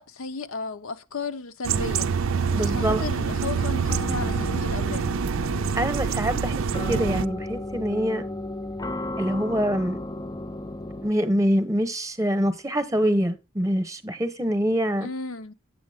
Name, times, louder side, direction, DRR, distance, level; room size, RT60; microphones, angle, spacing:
voice 1, 0.0-2.1 2.5-5.1 15.0-15.5, left 4 dB, 70° left, 0.7 m, -34 dB
sound 1, 1.6-7.2, right 6 dB, 65° right, 0.5 m, -26 dB
sound 2, 2.5-11.1, left 2 dB, 15° left, 0.4 m, -34 dB
voice 2, 2.5-3.0 5.7-6.6 6.9-8.3 9.2-10.0 11.0-15.1, equal, 15° right, 1.0 m, -25 dB
8.5 x 7.2 x 3.5 m
head